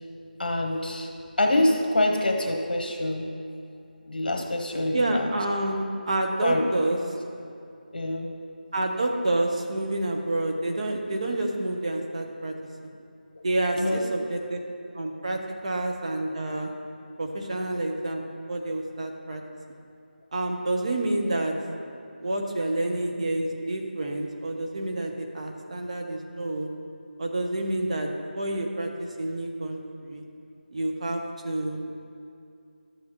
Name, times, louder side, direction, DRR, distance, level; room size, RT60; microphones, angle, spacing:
voice 1, 0.4-1.1 1.4-3.3 4.0-5.3 6.4-6.6 7.9-8.3 13.8-14.0, left 1 dB, 60° left, 2 dB, 1.2 m, -25 dB
voice 2, 4.9-7.0 8.7-12.5 13.4-14.6 14.9-16.7 17.2-18.2 18.5-19.4 20.3-21.5 22.2-26.7 27.2-30.2 30.7-31.8, right 1 dB, 40° right, 2 dB, 0.8 m, -28 dB
12.0 x 7.5 x 3.0 m, 2.5 s
figure-of-eight pair, 170°, 5 cm